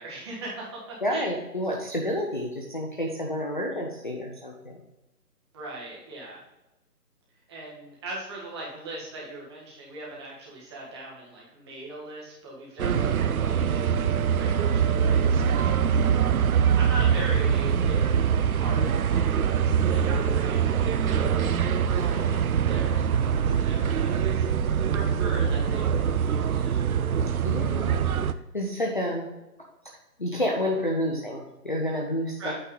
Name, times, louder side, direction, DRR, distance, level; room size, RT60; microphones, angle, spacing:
voice 1, 0.0-1.3 5.5-6.4 7.5-14.1 14.3-18.2 18.5-24.6 24.9-26.8 32.4-32.5, right 2 dB, 15° right, -4 dB, 1.5 m, -40 dB
voice 2, 1.0-4.8 12.8-13.0 22.0-22.3 23.4-23.6 27.4-28.0 28.5-29.3 30.2-32.5, left 1 dB, 30° left, 0 dB, 0.6 m, -30 dB
sound 1, 12.8-28.3, right 7 dB, 60° right, 0.5 m, -23 dB
8.7 x 3.6 x 5.4 m, 0.99 s
figure-of-eight pair, 160°, 48 cm